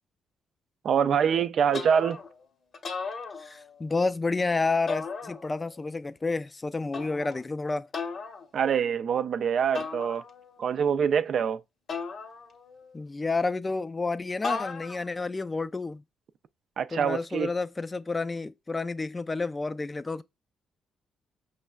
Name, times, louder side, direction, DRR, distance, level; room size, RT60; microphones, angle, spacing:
voice 1, 0.8-2.2 8.5-10.2 10.6-11.6 16.8-17.5, right 7 dB, 60° right, 0.3 m, -25 dB
sound 1, 1.7-2.4 2.7-3.9 4.9-5.8 6.9-7.4 7.9-8.4 9.7-10.6 11.9-12.9 14.4-15.2, left 4 dB, 50° left, 0.9 m, -36 dB
voice 2, 3.4-7.9 12.9-16.0 16.9-20.2, left 3 dB, 25° left, 0.3 m, -30 dB
5.4 x 3.2 x 2.3 m
cardioid pair, 90°, 0 cm